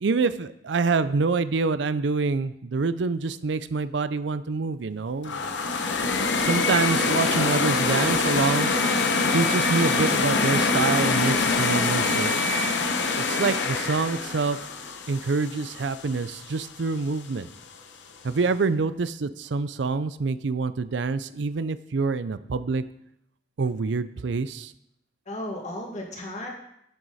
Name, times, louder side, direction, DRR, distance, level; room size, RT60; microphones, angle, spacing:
voice 1, 0.0-5.6 6.4-9.0 9.3-12.3 13.3-14.6 15.1-17.5 18.2-22.8 23.6-24.7, right 4 dB, 80° right, 14 dB, 0.5 m, -26 dB
sound 1, 5.2-16.2, left 3 dB, 80° left, 1.0 m, -24 dB
voice 2, 25.3-26.5, left 1 dB, 40° left, 0 dB, 2.1 m, -36 dB
11.0 x 7.8 x 4.2 m, 0.77 s
head